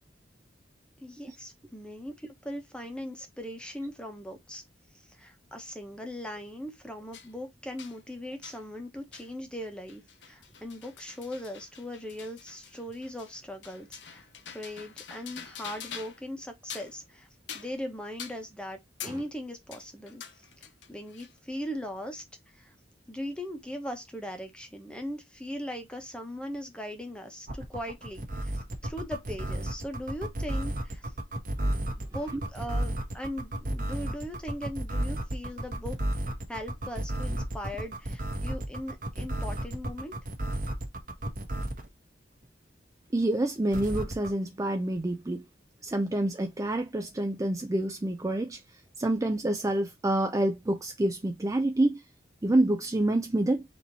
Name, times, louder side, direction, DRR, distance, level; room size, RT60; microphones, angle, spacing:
voice 1, 1.0-4.6 5.1-14.2 14.5-17.3 17.5-20.4 20.9-22.2 22.5-22.7 23.1-28.5 28.8-31.1 32.0-36.0 36.5-40.1, equal, 5° left, 1.1 m, -39 dB
sound 1, 7.1-7.3 7.8-8.0 8.4-8.6 9.1-9.3 9.6-16.3 16.6-17.0 17.5-17.8 18.2-18.4 19.0-19.2 19.7-21.4, left 8 dB, 80° left, 0.8 m, -45 dB
sound 2, 27.5-41.9 43.7-44.3, right 1 dB, 50° right, 1.2 m, -32 dB
voice 2, 43.1-45.4 45.8-48.6 49.0-52.0 52.4-53.6, right 1 dB, 20° right, 0.4 m, -27 dB
4.3 x 3.0 x 4.0 m
head